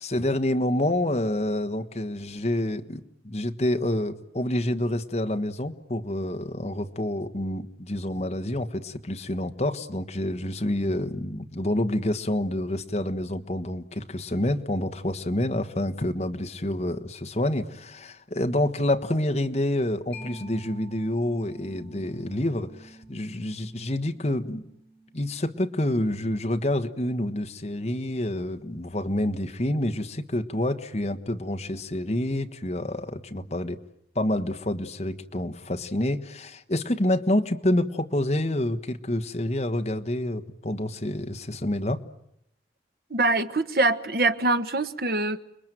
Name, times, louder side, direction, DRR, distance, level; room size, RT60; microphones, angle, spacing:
voice 1, 0.0-24.7 25.1-33.8 34.1-42.0, left 1 dB, 40° left, 1.4 m, -28 dB
Mallet percussion, 20.1-27.4, right 1 dB, 5° left, 7.8 m, -49 dB
voice 2, 43.1-45.4, right 2 dB, 55° right, 1.4 m, -24 dB
30.0 x 21.5 x 9.2 m
head